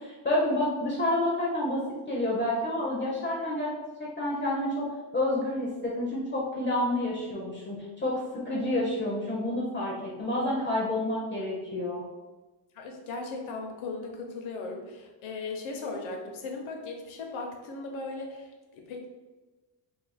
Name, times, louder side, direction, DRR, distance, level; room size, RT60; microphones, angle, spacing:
voice 1, 0.0-3.7 4.0-12.0, left 1 dB, 25° left, -4 dB, 0.4 m, -29 dB
voice 2, 12.7-19.1, left 3 dB, 75° left, 2 dB, 0.8 m, -37 dB
2.6 x 2.5 x 4.0 m, 1.2 s
cardioid pair, 170°, 48 cm